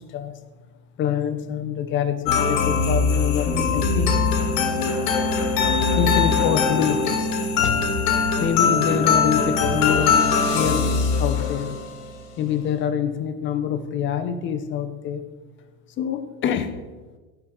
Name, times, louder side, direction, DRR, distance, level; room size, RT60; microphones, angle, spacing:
voice 1, 1.0-4.1 6.0-7.3 7.6-7.7 8.4-10.2 10.5-11.8 12.4-15.2 16.0-16.7, left 8 dB, 30° left, 8 dB, 0.6 m, -26 dB
sound 1, 2.3-11.9, left 5 dB, 70° left, 1.3 m, -21 dB
Bass guitar, 3.5-9.7, left 5 dB, 10° left, 1.5 m, -35 dB
11.5 x 4.6 x 3.8 m, 1.3 s
supercardioid pair, 140°, 41 cm